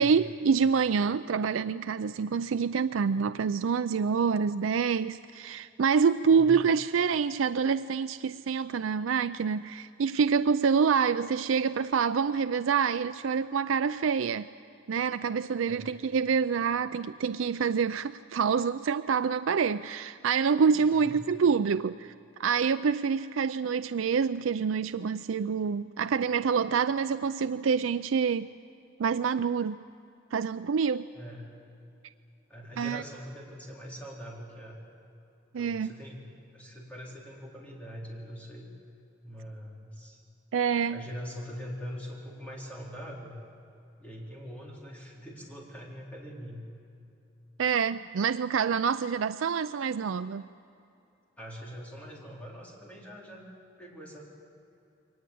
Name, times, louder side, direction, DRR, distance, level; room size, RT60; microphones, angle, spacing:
voice 1, 0.0-14.5 14.9-22.1 22.4-28.5 29.0-29.8 30.3-31.1 32.8-33.0 35.5-35.9 40.5-41.0 47.6-50.4, right 6 dB, 85° right, 12 dB, 0.4 m, -26 dB
voice 2, 6.3-6.6 15.7-16.0 21.0-21.3 31.1-31.6 32.5-34.8 35.5-38.7 39.2-40.2 40.9-43.3 44.0-46.7 51.4-53.5 53.8-54.2, equal, 5° left, -3 dB, 4.0 m, -43 dB
23.0 x 19.0 x 8.6 m, 2.8 s
head